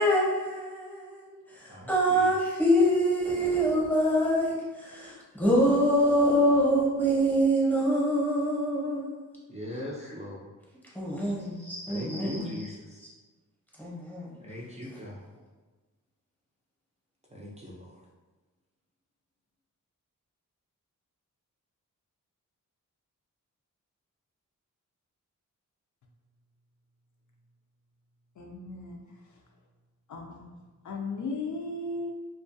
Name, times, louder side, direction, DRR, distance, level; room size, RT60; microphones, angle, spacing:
voice 1, 0.0-4.6 4.8-9.4 10.9-12.5 13.8-14.3, equal, 5° left, -6 dB, 0.8 m, -25 dB
voice 2, 1.7-2.3 9.5-10.4 11.4-13.0 14.4-15.2 17.3-17.9, left 1 dB, 20° right, -4 dB, 0.4 m, -40 dB
voice 3, 28.4-29.0 30.1-30.5 30.8-32.1, left 3 dB, 65° left, 0 dB, 0.4 m, -36 dB
2.3 x 2.3 x 2.5 m, 1.3 s
wide cardioid pair, 85°, 32 cm